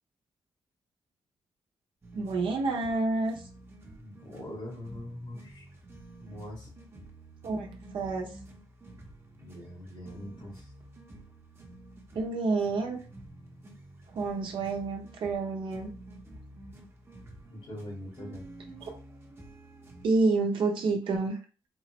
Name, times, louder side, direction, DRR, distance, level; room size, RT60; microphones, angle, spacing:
sound 1, 2.0-20.1, right 1 dB, 30° right, 0.8 m, -50 dB
voice 1, 2.1-3.4 7.4-8.3 12.1-13.0 14.1-15.9 18.8-18.9 20.0-21.4, right 3 dB, 80° right, 2 dB, 0.8 m, -29 dB
voice 2, 4.0-5.7 6.2-6.7 9.4-10.7 17.5-18.4, left 1 dB, 80° left, -5 dB, 1.7 m, -42 dB
3.8 x 2.0 x 2.9 m, 0.35 s
cardioid pair, 80°, 9 cm